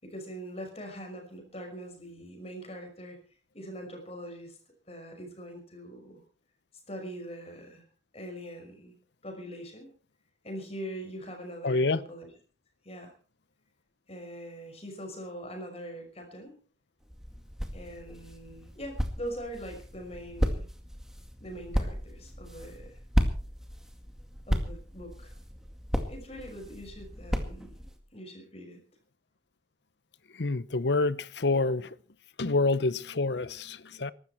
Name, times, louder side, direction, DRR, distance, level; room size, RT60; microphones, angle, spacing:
voice 1, 0.0-3.2 3.5-4.6 4.9-6.2 6.9-7.8 8.1-8.9 9.2-9.9 10.4-12.3 12.8-13.1 14.1-16.6 17.7-20.7 21.4-23.0 24.5-25.4 26.1-27.7 28.1-28.8, equal, 30° left, 5.8 m, -42 dB
voice 2, 11.6-12.0 30.4-31.9 32.4-34.1, left 3 dB, 65° left, 0.8 m, -27 dB
sound 1, 17.0-28.0, equal, 5° right, 2.0 m, -34 dB
23.0 x 13.0 x 4.4 m
head